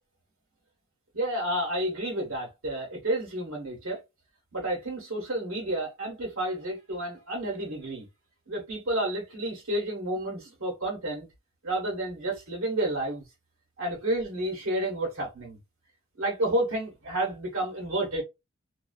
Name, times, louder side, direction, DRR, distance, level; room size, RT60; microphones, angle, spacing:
voice 1, 1.1-4.0 4.5-8.0 8.5-11.3 11.6-13.2 13.8-15.6 16.2-18.2, right 1 dB, 90° right, 1.0 m, -30 dB
2.4 x 2.3 x 2.3 m
head